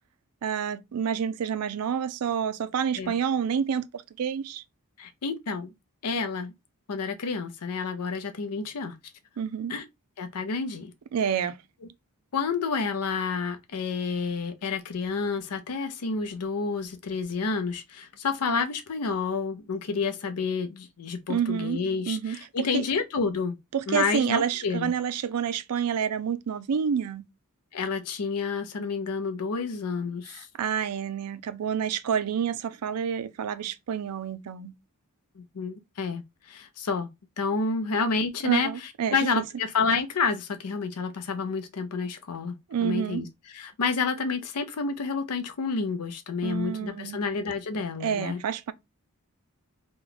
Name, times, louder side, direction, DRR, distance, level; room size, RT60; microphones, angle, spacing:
voice 1, 0.4-4.6 9.4-9.7 11.1-11.6 21.3-22.8 23.7-27.3 30.3-34.7 38.4-39.3 42.7-43.2 46.4-47.2 48.0-48.7, right 7 dB, 80° right, 0.4 m, -28 dB
voice 2, 5.0-5.7 6.0-6.5 6.9-9.0 9.7-9.8 10.2-10.9 12.3-23.6 23.9-24.9 27.7-30.5 35.4-37.1 37.4-42.5 42.8-48.4, left 4 dB, 90° left, 0.6 m, -29 dB
3.0 x 2.2 x 3.8 m
head